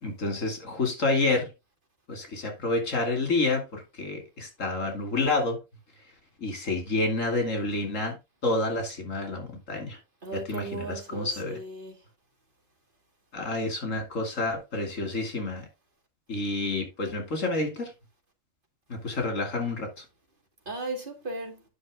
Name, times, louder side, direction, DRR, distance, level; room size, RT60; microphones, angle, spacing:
voice 1, 0.0-1.5 2.1-5.6 6.4-8.1 8.4-10.0 10.5-10.8 11.1-11.6 13.3-15.6 16.3-17.9 18.9-20.0, left 2 dB, 80° left, 2.9 m, -29 dB
voice 2, 10.2-12.0 20.7-21.6, right 2 dB, 40° right, 2.3 m, -36 dB
10.0 x 5.8 x 3.6 m
omnidirectional pair, 1.3 m